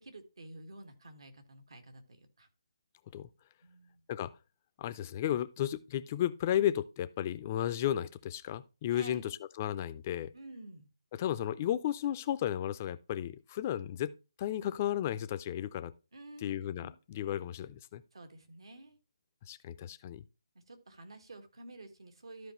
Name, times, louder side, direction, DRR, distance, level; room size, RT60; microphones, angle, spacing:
voice 1, 0.0-2.5 3.6-4.0 8.9-9.3 10.3-10.9 16.1-16.9 18.1-19.0 20.7-22.5, right 2 dB, 75° right, 1.6 m, -50 dB
voice 2, 4.8-9.2 9.6-10.3 11.2-14.1 14.4-15.9 16.4-18.0 19.5-20.2, left 11 dB, 25° left, 0.4 m, -33 dB
13.0 x 4.7 x 3.0 m
hypercardioid pair, 160°, 3 cm